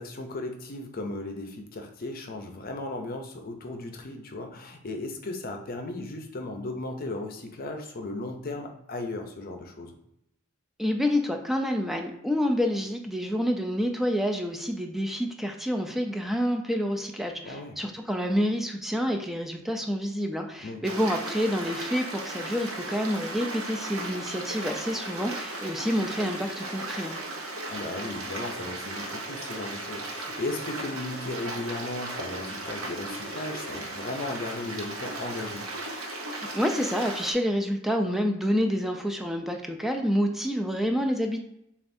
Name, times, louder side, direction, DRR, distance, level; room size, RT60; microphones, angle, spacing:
voice 1, 0.0-9.9 17.4-17.8 20.6-20.8 27.7-35.7, left 2 dB, 45° left, 4 dB, 0.6 m, -36 dB
voice 2, 10.8-27.2 36.5-41.4, equal, ahead, 3 dB, 0.3 m, -28 dB
Stream, 20.8-37.3, right 2 dB, 80° right, 0.8 m, -36 dB
6.8 x 2.4 x 2.6 m, 0.79 s
head